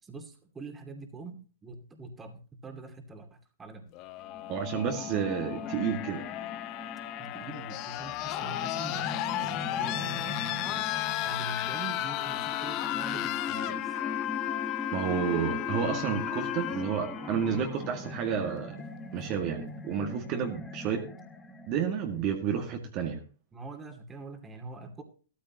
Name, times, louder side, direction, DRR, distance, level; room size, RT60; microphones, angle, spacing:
voice 1, 0.0-3.8 7.2-9.1 9.4-14.0 20.3-20.5 23.5-25.0, right 3 dB, 15° right, 5 dB, 2.5 m, -44 dB
sound 1, 3.9-17.9 19.1-19.2, left 15 dB, 40° left, 0.9 m, -34 dB
sound 2, 4.3-22.2, left 4 dB, 10° left, 1.3 m, -40 dB
voice 2, 4.5-6.3 14.9-18.8 19.1-21.0 21.7-23.2, right 7 dB, 40° right, 2 dB, 2.0 m, -31 dB
Wind instrument woodwind instrument, 13.0-15.1 15.4-18.7, equal, 80° right, 4.4 m, -50 dB
14.5 x 13.5 x 3.0 m, 0.38 s
hypercardioid pair, 120°, 0 cm